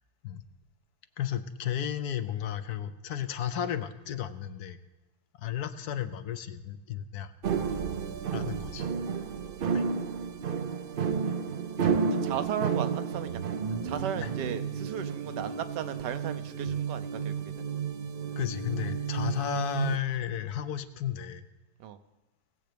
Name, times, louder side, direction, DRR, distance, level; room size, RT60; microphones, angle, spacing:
voice 1, 1.2-4.8 5.4-7.3 8.3-8.9 9.7-9.8 14.2-14.3 16.6-16.7 18.4-21.4, left 10 dB, 70° left, 10 dB, 1.1 m, -33 dB
sound 1, 7.4-20.0, right 6 dB, 65° right, 0.5 m, -31 dB
voice 2, 12.0-13.4 13.8-17.5 21.8-22.0, right 9 dB, 85° right, 10 dB, 1.4 m, -36 dB
19.5 x 7.7 x 5.1 m, 1.0 s
omnidirectional pair, 1.8 m